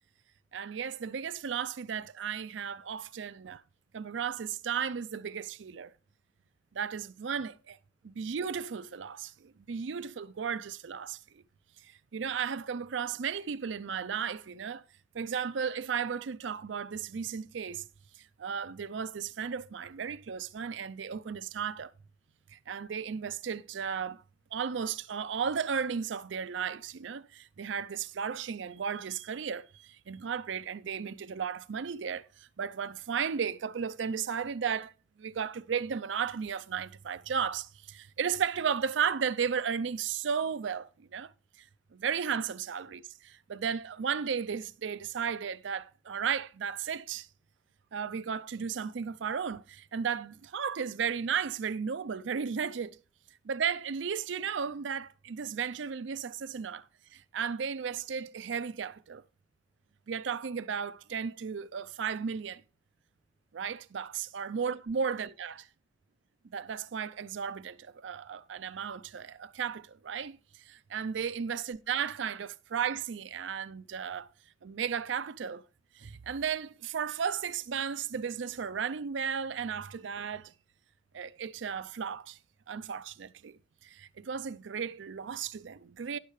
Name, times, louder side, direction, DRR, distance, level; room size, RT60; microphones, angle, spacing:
voice 1, 0.5-3.6 3.9-5.9 6.7-7.8 8.0-11.4 11.8-14.8 15.1-17.8 18.4-21.9 22.5-24.2 24.5-34.9 35.2-41.3 41.9-47.3 47.9-53.0 53.4-56.9 57.1-59.2 60.1-62.6 63.5-65.6 66.5-74.3 74.6-75.6 76.0-80.5 81.1-82.4 82.7-86.2, right 7 dB, 80° right, 0.5 m, -34 dB
18.0 x 6.5 x 3.1 m
head